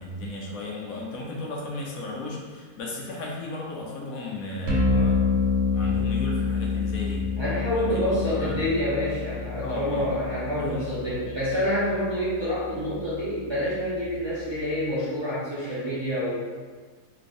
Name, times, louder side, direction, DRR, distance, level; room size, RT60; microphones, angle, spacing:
voice 1, 0.0-7.3 7.7-8.6 9.6-10.2 10.6-10.9, left 2 dB, 75° left, -2 dB, 1.1 m, -35 dB
sound 1, 4.7-14.7, left 4 dB, 85° right, 1.3 m, -29 dB
voice 2, 7.4-16.3, equal, 25° right, -11 dB, 0.8 m, -27 dB
3.5 x 3.3 x 2.5 m, 1.5 s
omnidirectional pair, 1.5 m